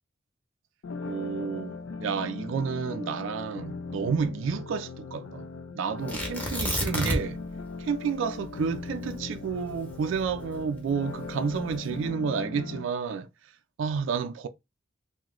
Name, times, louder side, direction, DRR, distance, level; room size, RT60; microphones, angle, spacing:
sound 1, 0.8-12.8, left 4 dB, 80° left, 0.4 m, -39 dB
voice 1, 1.1-5.5 5.7-7.4 7.8-13.3 13.8-14.5, right 6 dB, 75° right, 0.3 m, -30 dB
Tearing, 6.1-7.5 7.8-7.9 8.4-10.8 11.5-11.9, equal, 10° left, 0.8 m, -30 dB
2.9 x 2.1 x 3.7 m
head